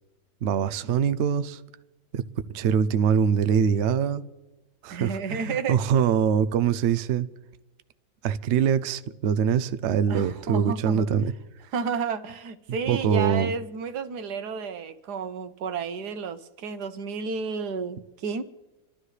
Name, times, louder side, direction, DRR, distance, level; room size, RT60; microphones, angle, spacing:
voice 1, 0.4-1.6 2.1-2.2 2.5-4.2 4.8-7.3 8.2-11.3 12.9-13.5, right 7 dB, 85° right, 0.6 m, -23 dB
voice 2, 4.9-5.8 10.1-11.0 11.7-18.4, right 5 dB, 65° right, 1.4 m, -31 dB
27.5 x 12.5 x 3.3 m
omnidirectional pair, 2.0 m